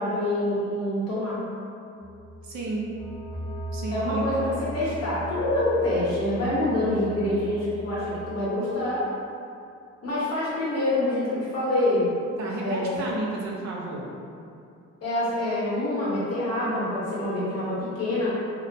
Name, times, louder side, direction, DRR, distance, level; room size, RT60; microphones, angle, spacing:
voice 1, 0.0-1.4 3.9-9.1 10.0-12.1 12.6-12.9 15.0-18.3, left 1 dB, 55° left, -8 dB, 1.1 m, -26 dB
sound 1, 2.0-8.3, equal, 15° left, 0.7 m, -37 dB
voice 2, 2.4-2.9 3.7-4.3 12.4-14.1, right 2 dB, 65° right, -3 dB, 0.6 m, -31 dB
2.7 x 2.1 x 2.6 m, 2.5 s
cardioid pair, 90°, 30 cm